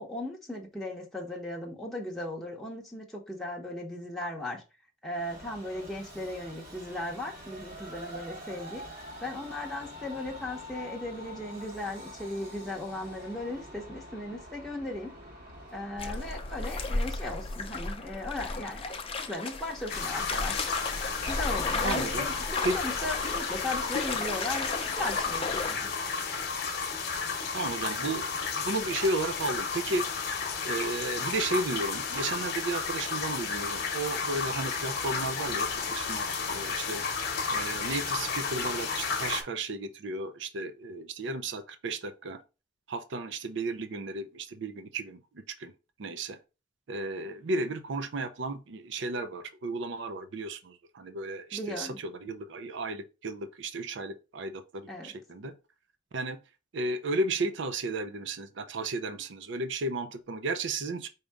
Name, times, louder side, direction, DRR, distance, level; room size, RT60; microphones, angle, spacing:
voice 1, 0.0-4.6 5.0-8.8 9.2-15.2 15.7-18.8 19.1-20.7 21.3-24.7 25.0-25.9 51.5-52.0 54.9-55.1, left 1 dB, ahead, 0.9 m, -37 dB
Train, 5.1-18.6, equal, 50° right, 1.4 m, -46 dB
sound 1, 16.0-25.7, left 3 dB, 30° left, 0.5 m, -34 dB
sound 2, 19.9-39.4, left 5 dB, 55° left, 0.9 m, -32 dB
voice 2, 21.8-22.3 22.6-22.8 27.5-28.3 28.5-30.0 30.6-37.0 37.5-42.4 42.9-45.7 46.0-46.4 46.9-55.5 56.1-56.4 56.7-61.1, right 2 dB, 65° right, 0.5 m, -34 dB
5.0 x 2.8 x 3.4 m
head